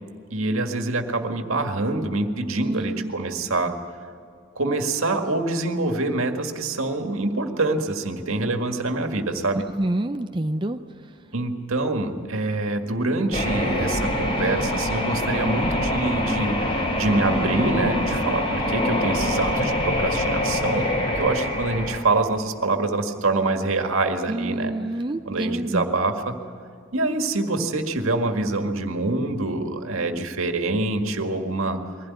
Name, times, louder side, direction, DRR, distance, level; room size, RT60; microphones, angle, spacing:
voice 1, 0.3-3.8 4.6-9.7 11.3-20.9 21.1-24.7 25.3-26.4 26.9-31.8, right 2 dB, 85° right, 5 dB, 1.9 m, -25 dB
voice 2, 2.6-3.1 9.5-10.8 24.3-25.8, right 1 dB, 20° right, 7 dB, 0.5 m, -27 dB
sound 1, 13.3-22.0, left 1 dB, 25° left, 3.4 m, -24 dB
22.5 x 16.0 x 9.6 m, 2.4 s
head